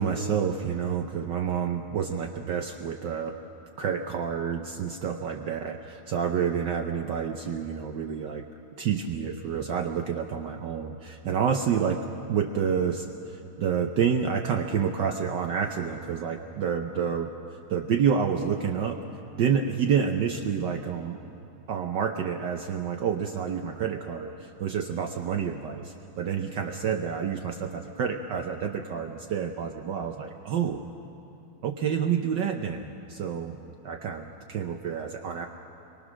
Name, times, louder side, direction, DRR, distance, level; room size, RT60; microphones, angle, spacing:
voice 1, 0.0-3.4 3.8-8.4 8.8-17.3 17.7-19.0 19.4-21.2 21.7-30.9 31.6-35.5, right 7 dB, 65° right, 5 dB, 1.4 m, -29 dB
28.5 x 23.5 x 6.3 m, 2.9 s
omnidirectional pair, 2.3 m